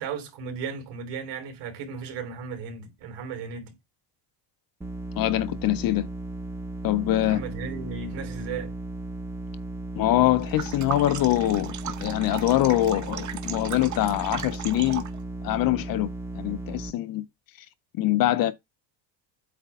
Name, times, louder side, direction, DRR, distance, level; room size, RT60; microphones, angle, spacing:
voice 1, 0.0-3.7 7.2-8.7, right 6 dB, 55° right, 3.2 m, -35 dB
sound 1, 4.8-16.9, right 2 dB, 5° right, 0.5 m, -36 dB
voice 2, 5.2-6.1 6.8-7.4 10.0-15.0 15.4-16.1 16.4-17.2 18.0-18.5, left 15 dB, 45° left, 0.6 m, -24 dB
sound 2, 10.4-15.2, right 10 dB, 35° right, 1.0 m, -37 dB
8.3 x 3.3 x 5.4 m
cardioid pair, 160°, 48 cm